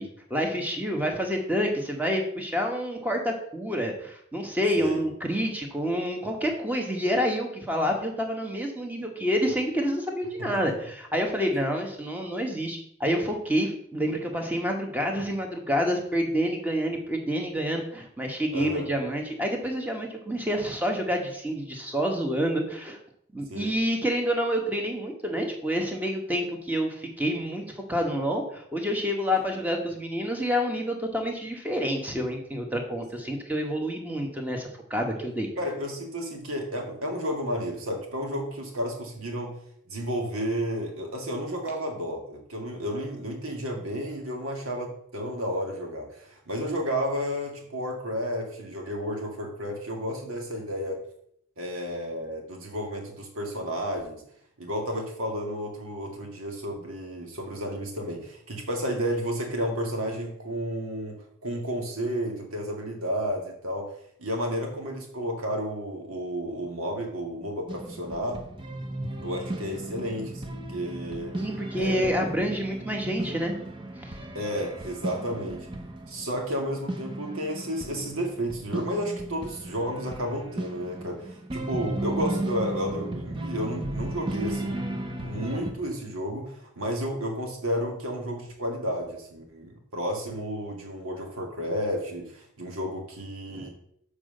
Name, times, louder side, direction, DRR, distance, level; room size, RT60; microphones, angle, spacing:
voice 1, 0.0-23.0 23.3-35.5 71.3-73.6 74.0-74.1 93.5-93.7, equal, 10° right, 2 dB, 1.2 m, -28 dB
voice 2, 18.5-18.9 23.5-23.7 35.3-39.5 39.9-51.0 51.6-54.2 54.6-63.9 64.2-68.4 69.2-71.4 71.8-72.4 74.3-75.7 76.1-84.8 85.2-93.7, equal, 85° right, 1 dB, 2.1 m, -32 dB
sound 1, 67.7-85.7, right 1 dB, 25° right, 0.8 m, -35 dB
7.3 x 4.9 x 6.5 m, 0.69 s
head